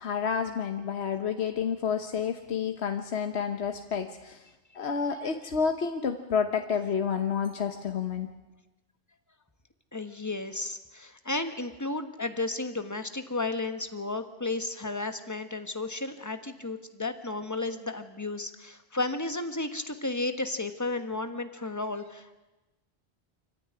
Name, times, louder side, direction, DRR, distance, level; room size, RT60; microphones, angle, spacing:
voice 1, 0.0-4.4 4.7-8.3, left 6 dB, 85° left, 6 dB, 1.4 m, -30 dB
voice 2, 9.9-22.4, left 2 dB, 15° left, 8 dB, 1.4 m, -33 dB
25.5 x 15.0 x 9.9 m, 1.1 s
omnidirectional pair, 1.1 m